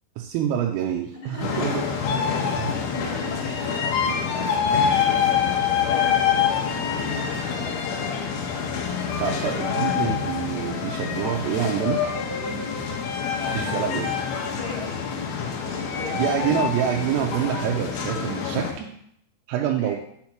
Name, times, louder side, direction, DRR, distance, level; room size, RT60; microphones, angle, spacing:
voice 1, 0.2-2.0 2.6-2.7 9.2-12.0 12.8-12.9 13.5-14.1 16.1-18.9 19.5-20.0, right 10 dB, 90° right, 0 dB, 3.2 m, -26 dB
voice 2, 1.2-1.8 2.3-5.1 5.9-8.1 12.3-12.6 14.4-15.2 15.6-16.5 19.6-20.0, left 1 dB, 55° left, -5 dB, 2.0 m, -39 dB
sound 1, 1.4-18.7, left 7 dB, 75° left, 2.9 m, -26 dB
7.7 x 2.9 x 5.8 m, 0.70 s
omnidirectional pair, 5.8 m